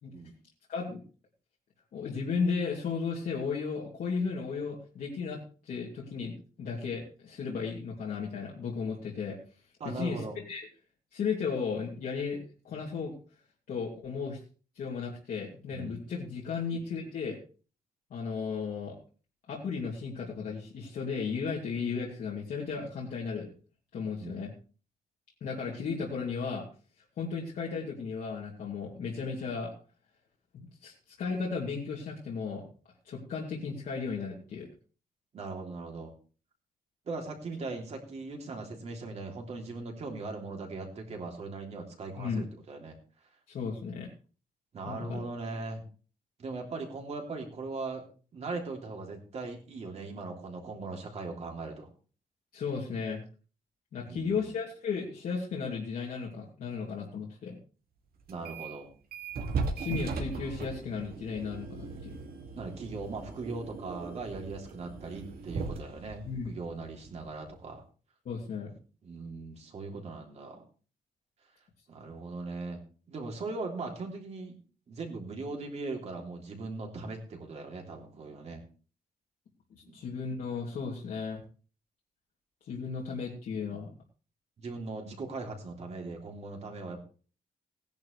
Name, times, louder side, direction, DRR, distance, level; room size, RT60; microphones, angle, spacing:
voice 1, 0.7-1.0 1.9-5.4 5.6-9.4 9.8-10.7 11.1-12.4 12.6-13.1 13.7-14.4 14.7-17.4 18.1-18.9 19.5-23.5 23.9-24.5 25.4-26.6 27.2-29.7 30.5-32.6 33.0-34.7 42.2-42.4 43.5-44.1 44.9-45.2 52.5-53.2 53.9-57.6 59.8-62.2 66.2-66.5 68.2-68.7 79.7-81.4 82.6-83.9, left 5 dB, 70° left, -4 dB, 2.7 m, -35 dB
voice 2, 9.8-10.4 15.7-16.1 24.2-24.5 35.3-36.1 37.1-43.0 44.7-45.8 46.4-48.0 48.3-51.9 54.0-54.5 58.3-58.9 62.5-67.8 69.0-70.6 71.9-72.8 73.1-74.6 74.9-78.6 79.9-80.0 83.7-83.9 84.6-87.0, right 3 dB, 45° right, 2 dB, 3.1 m, -39 dB
sound 1, 58.3-58.8 59.1-67.6, right 4 dB, 80° right, 2.3 m, -38 dB
18.5 x 10.5 x 3.3 m, 0.39 s
wide cardioid pair, 175°, 15 cm